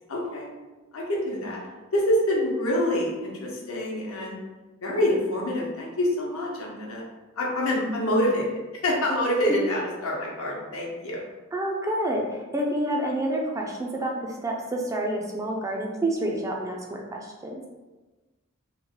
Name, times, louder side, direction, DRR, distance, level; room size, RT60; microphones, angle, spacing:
voice 1, 0.1-0.5 0.9-1.6 1.9-4.5 4.8-7.0 7.4-11.2, left 1 dB, 80° left, -3 dB, 0.8 m, -26 dB
voice 2, 11.5-17.6, right 1 dB, 15° right, 0 dB, 0.4 m, -28 dB
3.1 x 2.1 x 3.6 m, 1.2 s
head